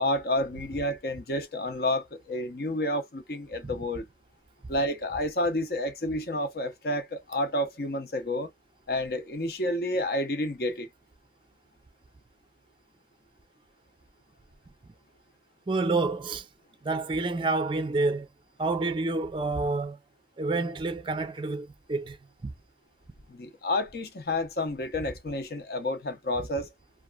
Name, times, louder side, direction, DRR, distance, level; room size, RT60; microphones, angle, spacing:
voice 1, 0.0-4.1 4.7-8.5 8.9-10.9 23.3-26.7, left 1 dB, 55° left, 0.7 m, -30 dB
voice 2, 15.7-16.5 16.8-18.3 18.6-20.0 20.4-22.2 22.4-22.5, right 3 dB, 30° right, 0.4 m, -28 dB
2.9 x 2.3 x 2.3 m
head